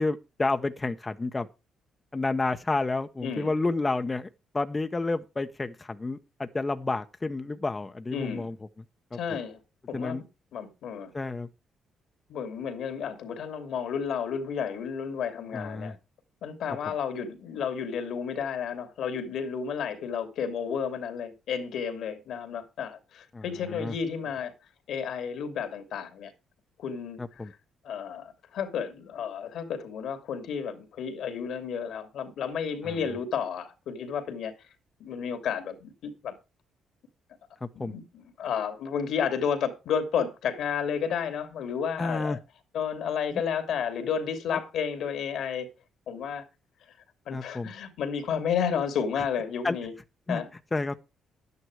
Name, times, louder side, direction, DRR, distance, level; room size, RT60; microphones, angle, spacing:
voice 1, 0.0-1.5 2.1-4.3 4.5-8.5 9.1-9.2 9.9-10.2 11.1-11.5 15.5-15.9 23.3-23.4 23.7-23.9 27.2-27.5 32.8-33.0 37.6-37.9 42.0-42.4 43.3-43.4 47.3-47.7 49.6-49.8 50.3-50.4 50.7-51.0, left 3 dB, 20° left, 0.9 m, -30 dB
voice 2, 3.2-3.5 8.1-8.5 9.1-9.6 9.9-10.2 10.5-11.1 12.3-16.0 16.4-24.5 24.9-26.3 26.8-27.5 27.8-34.5 35.0-36.3 37.7-42.4 42.7-45.7 46.1-46.4 47.3-49.9 50.3-50.5, left 7 dB, 75° left, 2.7 m, -32 dB
11.0 x 9.5 x 4.8 m
cardioid pair, 90°, 0 cm